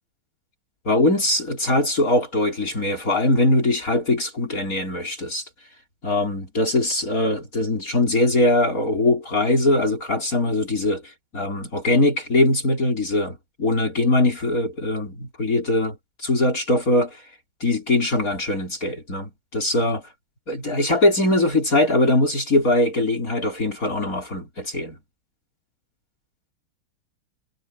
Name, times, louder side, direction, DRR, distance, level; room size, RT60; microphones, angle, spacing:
voice 1, 0.8-5.5 6.0-17.2 17.6-20.1 20.5-25.0, left 2 dB, 40° left, 4.6 m, -21 dB
omnidirectional pair, 2.3 m